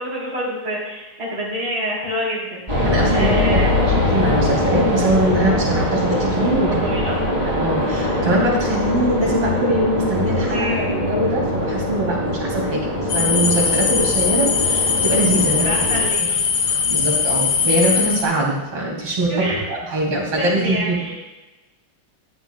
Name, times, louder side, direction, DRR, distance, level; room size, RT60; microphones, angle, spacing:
voice 1, 0.0-3.7 6.6-7.2 10.5-10.9 15.6-16.4 19.3-20.0 20.3-21.1, equal, 65° right, -10 dB, 4.3 m, -27 dB
sound 1, 2.7-16.1, left 1 dB, 20° right, 2.8 m, -22 dB
voice 2, 2.8-3.6 4.1-6.8 7.4-15.7 16.7-21.1, right 1 dB, 85° right, -3 dB, 3.8 m, -22 dB
sound 2, 13.1-18.2, left 6 dB, 70° left, 1.9 m, -20 dB
14.0 x 10.0 x 2.4 m, 1.1 s
omnidirectional pair, 2.4 m